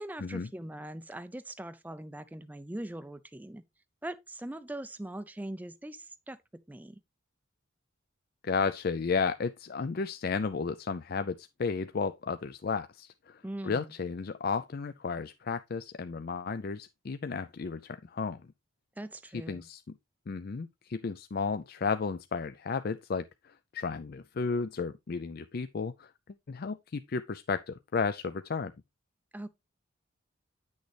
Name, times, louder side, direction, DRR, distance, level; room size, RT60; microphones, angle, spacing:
voice 1, 0.0-3.6 4.0-6.4 6.7-7.0 13.4-13.9 19.0-19.7 29.3-29.5, right 1 dB, 10° right, 0.4 m, -41 dB
voice 2, 8.4-18.4 19.3-19.9 20.3-26.1 26.5-28.7, left 5 dB, 50° left, 0.4 m, -33 dB
9.5 x 6.4 x 3.3 m
head